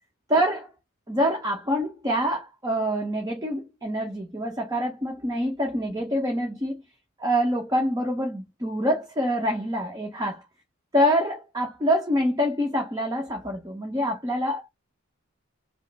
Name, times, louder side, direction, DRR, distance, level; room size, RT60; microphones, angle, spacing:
voice 1, 0.3-0.7 1.1-6.8 7.2-10.5 10.9-14.7, equal, 15° right, 1.1 m, -26 dB
5.4 x 2.1 x 3.4 m
head